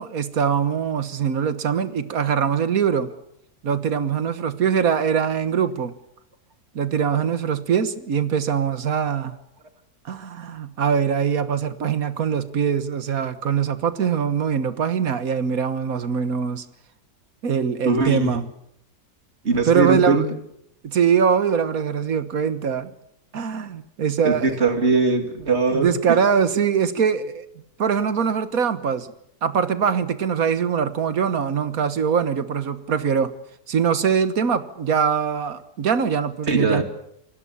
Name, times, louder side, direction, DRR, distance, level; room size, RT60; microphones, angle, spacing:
voice 1, 0.0-3.1 3.6-5.9 6.7-9.3 10.0-16.6 17.4-18.5 19.6-20.3 20.8-22.9 23.3-24.5 25.7-27.4 27.8-29.1 29.4-33.3 33.7-36.8, right 7 dB, 60° right, 13 dB, 1.7 m, -22 dB
voice 2, 17.9-18.4 19.4-20.3 24.2-25.9 36.5-36.8, right 3 dB, 40° right, 7 dB, 2.7 m, -20 dB
28.0 x 19.0 x 7.0 m, 0.74 s
omnidirectional pair, 1.7 m